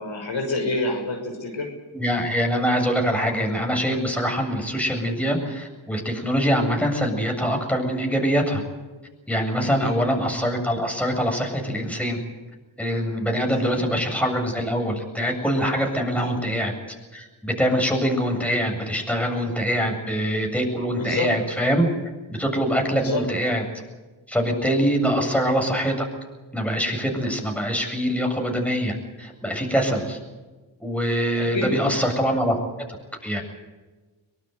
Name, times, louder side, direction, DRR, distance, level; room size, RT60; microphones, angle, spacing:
voice 1, 0.0-1.7 9.6-10.0 13.5-13.8 16.1-16.4 20.9-21.3 22.9-23.2 25.0-25.3 31.4-32.0, left 2 dB, 65° left, 3 dB, 6.2 m, -28 dB
voice 2, 1.9-8.6 9.3-12.2 12.8-16.7 17.1-21.9 22.3-23.6 24.3-26.1 26.5-30.2 30.8-32.6 33.2-33.4, equal, 5° left, 2 dB, 7.6 m, -24 dB
24.0 x 18.0 x 8.2 m, 1.3 s
cardioid pair, 50°, 48 cm